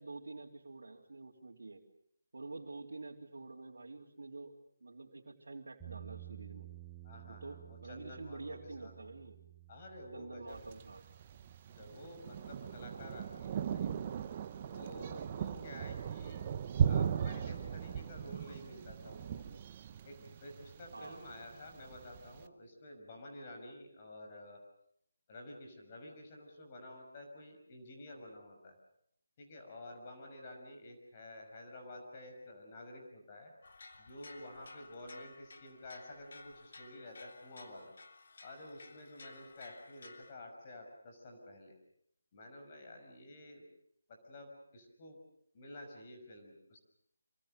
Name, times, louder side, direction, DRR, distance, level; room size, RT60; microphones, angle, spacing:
voice 1, 0.0-1.8 2.3-4.5 4.8-6.7 7.2-9.4 10.1-11.0 20.9-21.2, right 3 dB, 75° right, -4 dB, 3.6 m, -48 dB
sound 1, 5.8-13.9, right 15 dB, ahead, 7.4 m, -54 dB
voice 2, 7.0-8.9 9.7-10.6 11.8-14.1 14.6-16.5 16.8-19.5 20.0-24.6 25.3-28.8 29.4-33.5 34.0-37.9 38.4-41.8 42.3-43.6 44.1-45.2 45.5-46.8, left 1 dB, 30° left, 2 dB, 6.0 m, -51 dB
Thunder, 10.5-22.4, right 8 dB, 25° right, 1.0 m, -38 dB
sound 2, 33.6-40.3, left 3 dB, 60° left, 3.5 m, -55 dB
27.0 x 24.5 x 6.7 m, 0.71 s
figure-of-eight pair, 165°, 0 cm